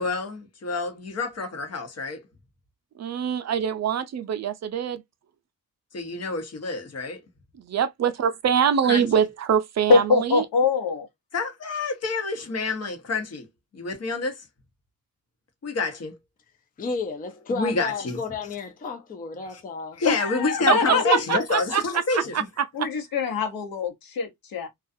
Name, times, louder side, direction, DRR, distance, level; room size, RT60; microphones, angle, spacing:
voice 1, 0.0-2.3 5.9-7.2 8.9-9.0 11.3-13.5 13.7-14.5 15.6-16.2 17.5-18.2 19.5-19.6 19.9-22.5, left 3 dB, 45° left, 0.9 m, -28 dB
voice 2, 3.0-5.0 7.6-10.5 20.7-20.8 21.1-22.9, right 8 dB, 50° right, 0.4 m, -24 dB
voice 3, 9.9-11.1 20.0-21.4 22.7-24.7, left 4 dB, 85° left, 1.0 m, -23 dB
voice 4, 16.8-20.0 20.9-21.3, left 4 dB, 25° left, 0.4 m, -32 dB
2.4 x 2.3 x 2.5 m
wide cardioid pair, 125°, 35 cm